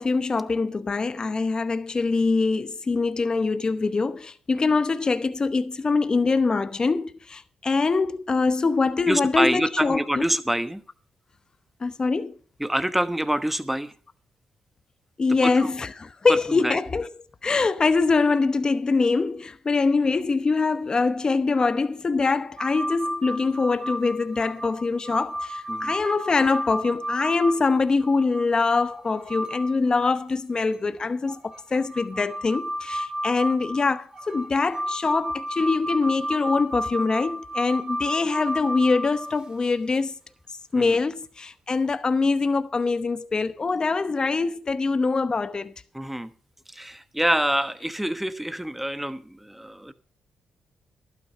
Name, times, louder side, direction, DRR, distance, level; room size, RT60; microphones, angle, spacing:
voice 1, 0.0-10.2 11.8-12.4 15.2-17.1 17.4-40.1 40.7-45.7, left 4 dB, 35° left, 0.9 m, -24 dB
voice 2, 9.1-10.8 12.6-13.9 15.4-15.7 16.3-16.8 25.7-26.0 40.7-41.0 45.9-46.3 46.7-49.9, right 1 dB, 5° right, 1.1 m, -26 dB
sound 1, 22.6-28.4 29.0-29.8 30.1-30.2 31.3-39.7 41.8-41.9, equal, 35° right, 2.3 m, -32 dB
12.0 x 9.4 x 5.6 m
cardioid pair, 65°, 2 cm